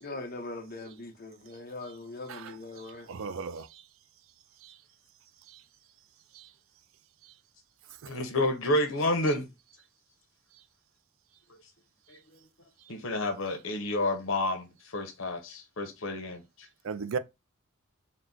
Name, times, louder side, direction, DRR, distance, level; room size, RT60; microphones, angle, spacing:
voice 1, 0.0-3.1, left 2 dB, 45° left, 0.9 m, -41 dB
voice 2, 3.1-3.8 4.6-4.7 5.5-5.6 6.3-6.5 16.8-17.2, right 5 dB, 80° right, 0.4 m, -36 dB
voice 3, 8.0-9.5 12.1-12.2 12.9-16.4, left 1 dB, 80° left, 1.0 m, -29 dB
4.3 x 2.1 x 3.9 m
head